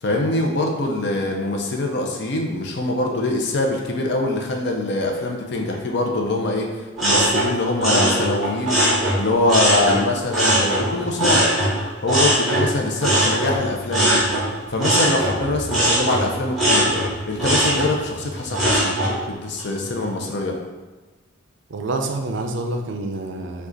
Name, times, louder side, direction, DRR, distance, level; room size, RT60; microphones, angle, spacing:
voice 1, 0.0-6.7 7.0-8.8 9.2-11.5 12.0-14.2 14.7-16.9 17.3-19.0 19.3-20.6, left 2 dB, 55° left, 1 dB, 0.5 m, -23 dB
sound 1, 7.0-10.0 10.3-19.2 19.6-20.1, right 1 dB, ahead, 1.3 m, -20 dB
voice 2, 21.7-23.7, right 2 dB, 60° right, 4 dB, 0.4 m, -27 dB
4.9 x 2.3 x 3.9 m, 1.2 s
head